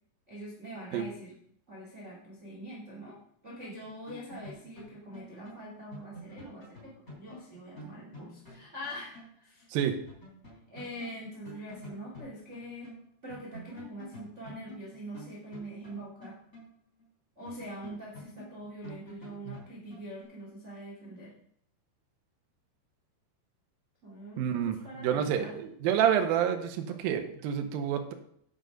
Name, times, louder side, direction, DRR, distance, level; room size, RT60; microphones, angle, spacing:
voice 1, 0.3-1.3 1.7-3.1 3.4-9.7 10.7-12.9 13.2-16.3 17.3-21.3 24.0-25.5 26.9-27.0, right 1 dB, 30° right, -5 dB, 1.3 m, -44 dB
sound 1, 3.6-9.4 9.6-9.7 10.1-13.0 13.3-17.0 17.5-20.2, equal, 15° left, 3.2 m, -49 dB
voice 2, 24.4-28.1, right 9 dB, 85° right, 6 dB, 2.0 m, -28 dB
9.0 x 6.4 x 5.2 m, 0.68 s
omnidirectional pair, 5.5 m